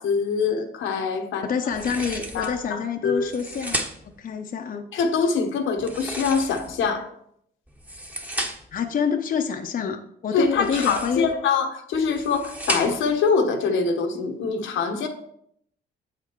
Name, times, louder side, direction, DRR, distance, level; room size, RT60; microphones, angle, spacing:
voice 1, 0.0-1.4 2.3-3.3 4.9-7.1 10.3-15.1, left 5 dB, 80° left, 1.1 m, -24 dB
voice 2, 1.4-4.9 8.7-11.3, left 6 dB, 45° left, 0.7 m, -27 dB
sound 1, 1.7-2.6 3.2-4.2 5.8-6.9 7.7-8.8 10.5-11.3 11.9-13.2, right 1 dB, 5° right, 1.0 m, -33 dB
7.6 x 5.0 x 4.5 m
cardioid pair, 90°, 20 cm